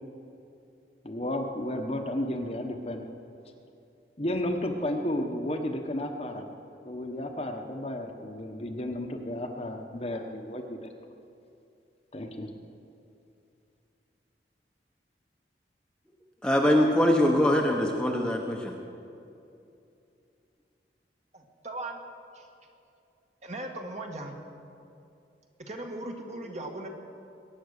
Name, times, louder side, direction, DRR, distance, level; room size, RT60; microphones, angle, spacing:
voice 1, 1.0-3.0 4.2-6.5 6.8-10.8 12.1-12.5, left 1 dB, 35° left, 4 dB, 1.1 m, -32 dB
voice 2, 16.4-18.7, left 1 dB, 5° left, 0 dB, 1.0 m, -23 dB
voice 3, 21.3-22.0 22.3-22.5 23.4-24.4 25.6-26.9, right 1 dB, 40° right, 2 dB, 1.8 m, -38 dB
22.0 x 9.4 x 6.6 m, 2.6 s
head